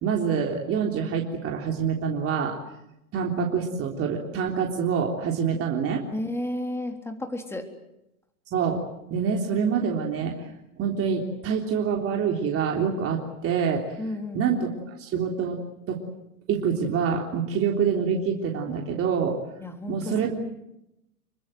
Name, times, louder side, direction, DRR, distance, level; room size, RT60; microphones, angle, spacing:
voice 1, 0.0-2.6 3.1-6.0 8.5-8.8 9.1-10.3 10.8-13.8 14.3-15.6 15.9-16.0 16.5-19.4 19.9-20.4, right 6 dB, 30° right, 1 dB, 3.6 m, -26 dB
voice 2, 6.1-7.7 14.0-14.4 19.6-20.1, left 1 dB, 5° left, 4 dB, 3.6 m, -32 dB
27.0 x 24.0 x 7.9 m, 0.86 s
hypercardioid pair, 115°, 44 cm